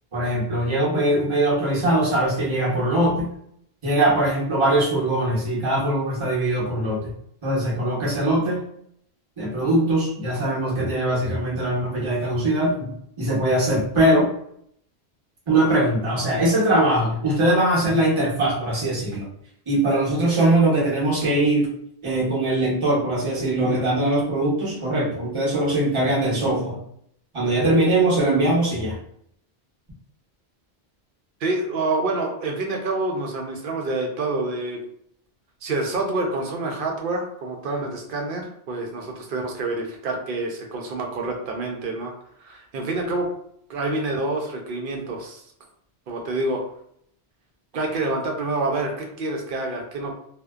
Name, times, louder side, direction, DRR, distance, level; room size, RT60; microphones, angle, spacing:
voice 1, 0.1-3.3 3.8-7.1 7.4-8.6 9.4-14.3 15.5-19.3 19.7-21.7 22.0-26.8 27.3-29.0, right 1 dB, 30° right, -6 dB, 0.8 m, -21 dB
voice 2, 31.4-34.8 35.6-42.1 42.4-43.3 43.7-45.4 46.1-46.6 47.7-50.1, right 2 dB, 60° right, 2 dB, 0.7 m, -27 dB
2.6 x 2.1 x 2.3 m, 0.69 s
omnidirectional pair, 1.1 m